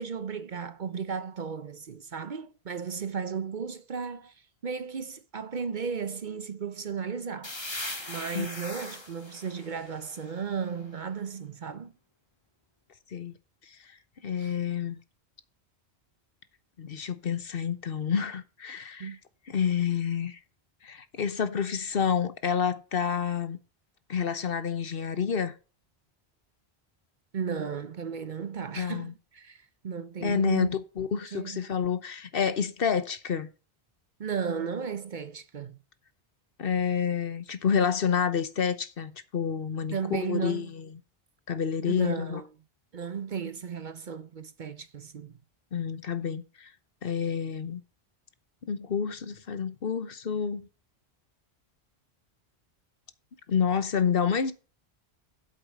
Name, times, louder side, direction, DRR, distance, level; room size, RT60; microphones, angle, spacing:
voice 1, 0.0-4.3 4.6-7.6 8.1-11.9 14.4-14.5 19.0-19.2 27.3-30.7 31.3-31.6 34.2-35.8 39.9-40.7 41.9-42.5 42.9-45.4, right 6 dB, 50° right, 0.8 m, -35 dB
sound 1, 7.4-11.0, left 2 dB, 25° left, 1.9 m, -40 dB
voice 2, 14.2-15.0 16.8-19.2 19.5-20.4 20.8-23.6 24.1-25.5 28.7-29.1 30.2-33.5 36.6-41.0 41.5-42.4 45.7-46.7 47.0-47.8 48.7-50.7 53.5-54.5, left 7 dB, 60° left, 1.1 m, -29 dB
8.2 x 8.1 x 5.3 m
omnidirectional pair, 1.1 m